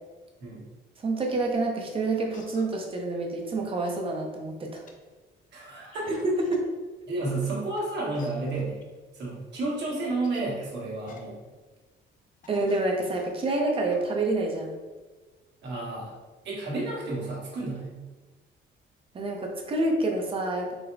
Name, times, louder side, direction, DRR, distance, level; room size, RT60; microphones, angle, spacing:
voice 1, 1.0-4.8 6.2-6.6 12.5-14.8 19.1-20.7, right 2 dB, 25° right, 1 dB, 0.6 m, -27 dB
sound 1, 1.3-1.4 1.8-1.9 2.3-2.9 3.5-3.6 3.8-3.9 4.7-4.9 5.9-6.6 7.2-7.8 8.1-8.3 8.5-8.8 9.3-9.4 10.2-10.5 11.1-11.2 11.6-11.7 12.1-12.2 12.4-12.8 13.1-13.5 13.9-14.0, left 5 dB, 40° left, 0.5 m, -49 dB
voice 2, 5.5-6.1 7.1-8.8 9.1-11.4 15.6-16.1 16.4-18.0, right 2 dB, 60° right, -5 dB, 1.4 m, -31 dB
3.9 x 2.1 x 4.5 m, 1.3 s
cardioid pair, 155°, 20 cm